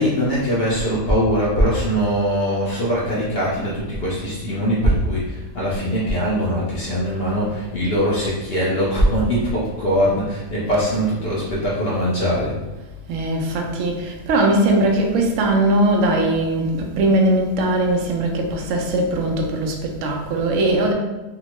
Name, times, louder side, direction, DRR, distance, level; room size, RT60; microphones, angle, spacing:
voice 1, 0.0-12.5, equal, 50° left, -6 dB, 0.7 m, -21 dB
voice 2, 13.1-20.9, right 1 dB, 70° right, 1 dB, 0.7 m, -20 dB
3.7 x 2.1 x 2.9 m, 1.1 s
omnidirectional pair, 1.7 m